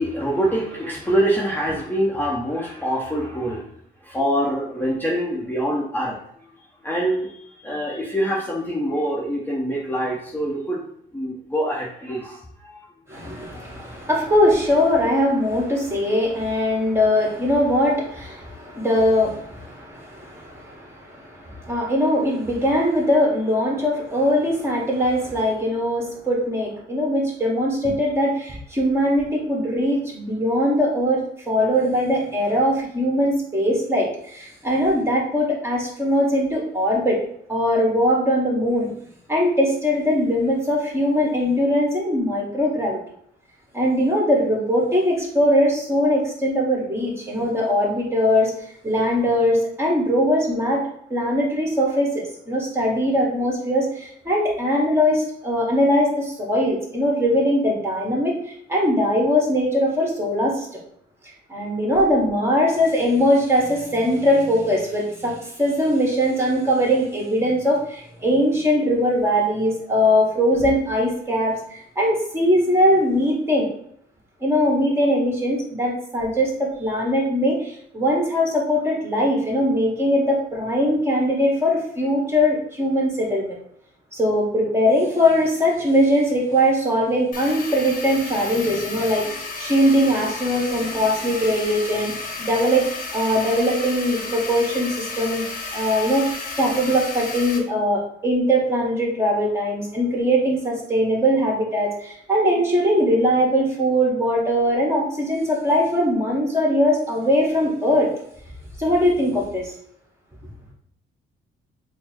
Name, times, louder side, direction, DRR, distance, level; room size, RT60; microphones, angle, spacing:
voice 1, 0.0-3.7 4.0-6.2 6.8-10.8 11.1-12.8 13.1-13.6, equal, 10° left, -5 dB, 0.8 m, -25 dB
voice 2, 13.1-37.2 37.5-38.9 39.3-43.0 43.7-48.5 48.8-50.8 51.1-60.7 61.5-73.7 74.4-83.6 84.1-95.4 95.7-96.3 96.6-108.1 108.8-109.7, equal, 10° right, -2 dB, 1.4 m, -21 dB
sound 1, 87.3-97.6, left 3 dB, 40° left, 1.0 m, -33 dB
4.2 x 2.0 x 4.2 m, 0.69 s
cardioid pair, 90°, 20 cm